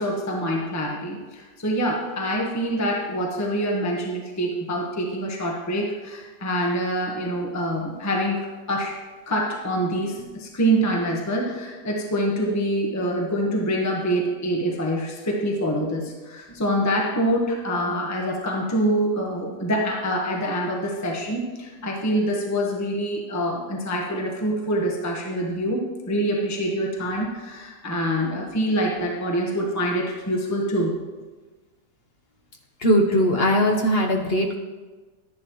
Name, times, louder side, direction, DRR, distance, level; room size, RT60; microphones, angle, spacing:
voice 1, 0.0-9.0 9.3-30.9, equal, 10° left, 0 dB, 1.0 m, -25 dB
voice 2, 32.8-34.6, equal, 45° left, 3 dB, 0.9 m, -20 dB
11.5 x 10.5 x 3.0 m, 1.3 s
omnidirectional pair, 1.8 m